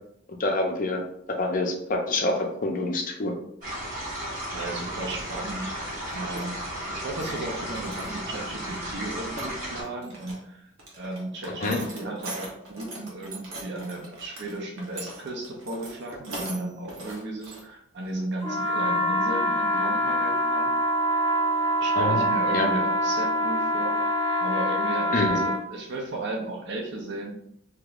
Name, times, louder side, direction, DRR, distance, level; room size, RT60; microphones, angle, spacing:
voice 1, 0.4-1.0 1.4-3.3 11.6-11.8 22.0-22.2 22.5-22.7 25.1-25.4, left 2 dB, 40° left, 2 dB, 0.5 m, -26 dB
sound 1, 3.6-9.8, right 1 dB, 35° right, 1.4 m, -34 dB
voice 2, 4.5-5.7 6.1-6.6 6.9-10.7 11.0-20.7 21.8-24.1 24.4-27.4, right 2 dB, 55° right, 0 dB, 0.6 m, -35 dB
sound 2, 6.0-6.4 6.8-7.4 7.7-8.5 8.8-8.9 9.1-10.4 10.8-17.6 18.0-18.1 19.5-19.6 19.9-20.2, right 2 dB, 75° right, 1.0 m, -41 dB
sound 3, 18.4-25.6, equal, 15° left, 1.1 m, -25 dB
3.5 x 2.8 x 2.4 m, 0.73 s
head